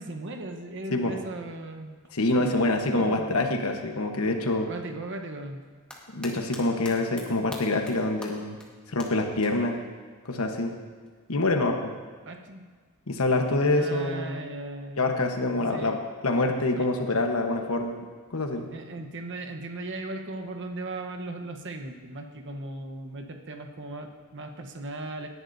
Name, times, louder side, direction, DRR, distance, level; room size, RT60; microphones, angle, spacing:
voice 1, 0.0-2.0 2.4-3.4 4.7-5.6 12.2-12.7 13.6-15.0 15.5-16.0 16.8-16.9 18.7-25.3, right 2 dB, 60° right, 4 dB, 1.1 m, -37 dB
voice 2, 2.1-4.7 6.1-8.6 8.9-9.8 10.3-10.7 11.3-11.9 13.1-14.4 15.0-18.0 18.3-18.7, left 2 dB, 85° left, 4 dB, 1.1 m, -26 dB
sound 1, 5.6-6.6 6.9-7.2 7.5-7.9 8.2-8.3 8.6-8.7 9.0-9.1 9.4-9.5 11.1-11.2, left 1 dB, 5° left, 1.6 m, -41 dB
19.0 x 11.0 x 2.7 m, 1.5 s
head